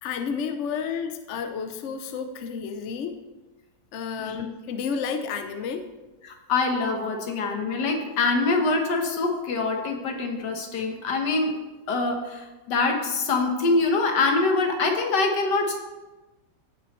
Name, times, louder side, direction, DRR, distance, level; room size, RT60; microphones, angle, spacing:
voice 1, 0.0-3.2 3.9-5.9, left 6 dB, 65° left, 7 dB, 0.7 m, -31 dB
voice 2, 6.2-11.5 11.9-15.8, left 3 dB, 90° left, 3 dB, 1.8 m, -24 dB
16.0 x 6.0 x 3.1 m, 1.2 s
omnidirectional pair, 1.8 m